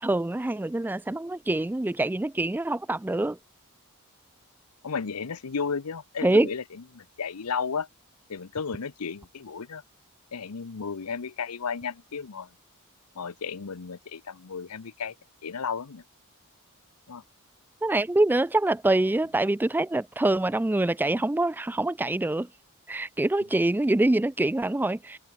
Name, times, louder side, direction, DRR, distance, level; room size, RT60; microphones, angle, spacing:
voice 1, 0.0-3.4 6.2-6.5 17.8-22.5 22.9-25.2, right 2 dB, 10° right, 0.3 m, -25 dB
voice 2, 4.8-7.9 8.3-9.8 10.3-12.5 13.1-15.1 15.4-16.0 17.1-17.2, left 5 dB, 85° left, 0.8 m, -33 dB
head